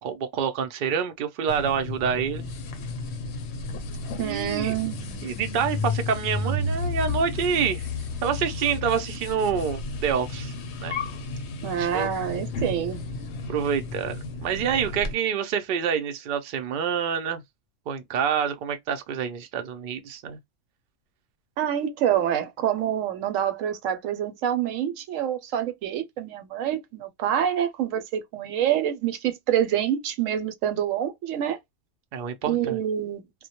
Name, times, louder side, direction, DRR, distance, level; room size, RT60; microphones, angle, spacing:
voice 1, 0.0-2.4 4.2-4.7 5.2-7.9 8.2-10.5 10.8-11.0 11.7-12.1 13.5-17.4 17.9-20.4 32.1-32.8, right 7 dB, 60° right, 0.5 m, -27 dB
sound 1, 1.5-15.1, left 3 dB, 65° left, 0.8 m, -32 dB
voice 2, 4.2-5.3 11.6-13.0 21.6-31.6 32.4-33.2, right 10 dB, 80° right, 1.0 m, -26 dB
2.1 x 2.1 x 2.8 m
omnidirectional pair, 1.3 m